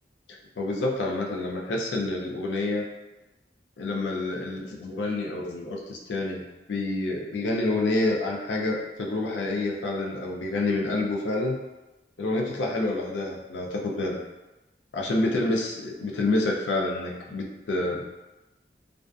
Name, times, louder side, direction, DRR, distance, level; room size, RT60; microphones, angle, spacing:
voice 1, 0.3-2.8 3.8-6.4 6.7-11.6 12.2-14.2 14.9-18.0, left 2 dB, 85° left, 0 dB, 0.4 m, -28 dB
2.5 x 2.3 x 2.3 m, 1.1 s
head